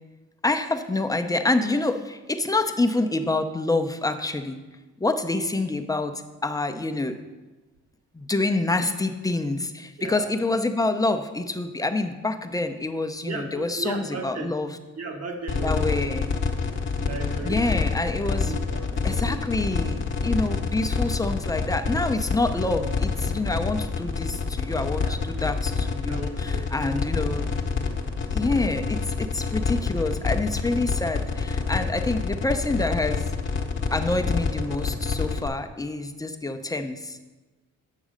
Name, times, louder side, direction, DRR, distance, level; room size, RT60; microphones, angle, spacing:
voice 1, 0.4-4.6 5.0-6.1 6.4-7.2 8.1-14.7 15.6-16.3 17.4-18.6 19.0-27.5 28.3-33.2 33.9-37.2, left 2 dB, 10° left, 7 dB, 0.6 m, -27 dB
voice 2, 10.0-10.3 13.2-14.5 14.9-16.2 17.0-18.0 18.5-19.4 25.0-25.2 26.0-27.3 27.9-28.0, right 3 dB, 55° right, 4 dB, 1.4 m, -36 dB
sound 1, 15.5-35.5, left 5 dB, 40° left, 1.0 m, -27 dB
8.4 x 6.2 x 5.1 m, 1.2 s
cardioid pair, 90°, 30 cm